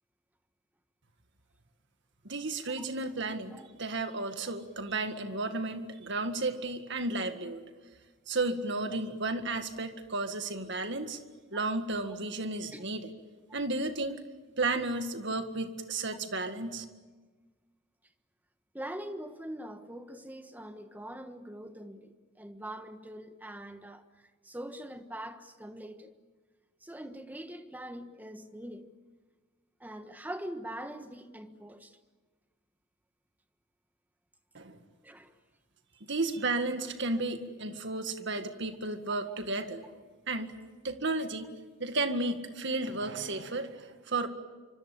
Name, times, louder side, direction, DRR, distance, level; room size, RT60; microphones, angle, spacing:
voice 1, 2.2-7.6 8.3-11.2 11.5-13.1 13.5-14.2 14.6-16.8 34.5-34.8 36.1-40.0 40.3-40.6 40.8-41.5 41.8-44.3, right 2 dB, 60° right, 1.9 m, -33 dB
voice 2, 18.7-26.1 26.8-28.9 29.8-32.0 35.0-35.3 39.3-39.4, right 1 dB, 10° right, 1.4 m, -43 dB
25.5 x 25.0 x 8.6 m
head